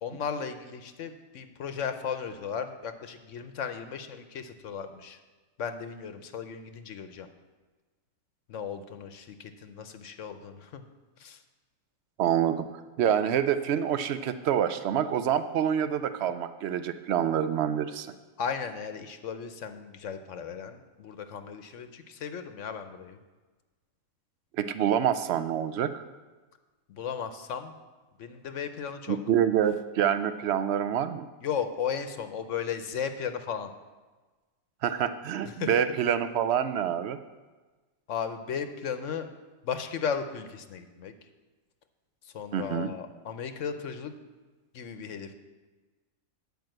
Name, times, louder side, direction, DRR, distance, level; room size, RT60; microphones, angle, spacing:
voice 1, 0.0-5.2 5.6-7.3 8.5-10.8 11.2-11.4 18.4-23.2 26.9-27.7 28.2-29.2 31.4-33.7 35.6-35.7 38.1-39.3 39.6-41.1 42.3-44.1 44.7-45.3, left 7 dB, 65° left, 8 dB, 1.0 m, -35 dB
voice 2, 12.2-12.7 13.0-18.1 24.6-26.0 29.1-31.3 34.8-37.2 42.5-42.9, right 9 dB, 65° right, 11 dB, 0.7 m, -27 dB
9.0 x 5.4 x 7.8 m, 1.3 s
omnidirectional pair, 1.5 m